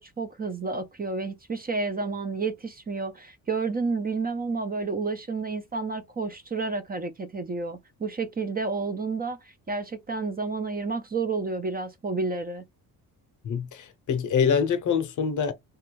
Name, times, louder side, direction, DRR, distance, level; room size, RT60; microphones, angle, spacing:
voice 1, 0.0-12.6, right 4 dB, 25° right, 0.5 m, -30 dB
voice 2, 13.4-15.5, left 7 dB, 55° left, 0.7 m, -25 dB
3.3 x 2.3 x 3.0 m
cardioid pair, 90°, 37 cm